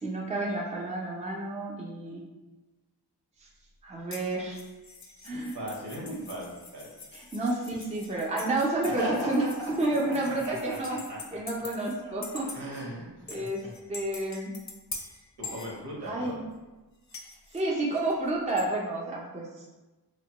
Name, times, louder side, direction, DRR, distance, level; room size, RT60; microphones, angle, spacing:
voice 1, 0.0-2.2 3.8-4.6 5.2-5.5 7.1-9.4 9.8-11.0 11.3-12.5 13.3-13.6 13.9-14.5 16.1-16.4 17.5-19.7, right 2 dB, 15° right, -2 dB, 0.5 m, -30 dB
sound 1, 4.1-12.0 12.2-12.8 13.3-16.3 17.1-18.7, left 4 dB, 45° left, 0.5 m, -45 dB
voice 2, 5.3-6.9 8.8-9.7 10.0-11.2 12.0-13.7 15.4-16.4, right 1 dB, 75° right, -4 dB, 1.0 m, -38 dB
2.9 x 2.2 x 2.9 m, 1.1 s
wide cardioid pair, 55°, 40 cm